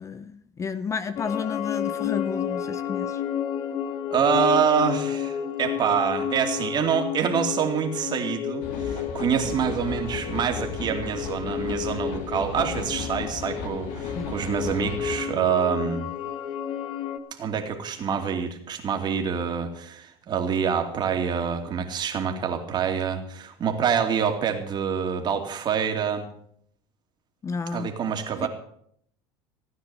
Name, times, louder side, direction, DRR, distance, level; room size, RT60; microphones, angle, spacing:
voice 1, 0.0-3.2 14.2-14.3 27.4-27.9 28.4-28.5, left 5 dB, 25° left, 13 dB, 0.7 m, -31 dB
sound 1, 1.2-17.2, left 8 dB, 45° left, 1.4 m, -31 dB
voice 2, 4.1-16.1 17.4-26.3 27.7-28.5, right 7 dB, 35° right, 4 dB, 2.7 m, -26 dB
sound 2, 8.6-15.2, left 5 dB, 65° left, 2.5 m, -35 dB
16.5 x 9.6 x 7.1 m, 0.68 s
supercardioid pair, 115°, 13 cm